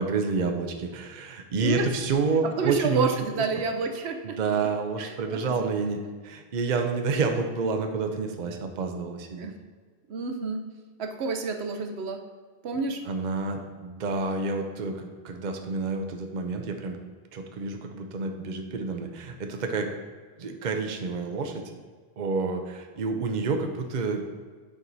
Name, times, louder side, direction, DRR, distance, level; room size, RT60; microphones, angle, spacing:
voice 1, 0.0-3.1 4.2-9.5 13.1-17.0 17.3-19.9 20.4-21.8 22.2-24.2, right 4 dB, 50° right, 4 dB, 0.8 m, -29 dB
voice 2, 2.4-4.7 5.0-5.7 9.4-9.5 10.1-10.7 11.0-12.2 12.6-13.0, right 5 dB, 80° right, 6 dB, 0.9 m, -29 dB
8.5 x 4.7 x 4.0 m, 1.5 s
omnidirectional pair, 1.1 m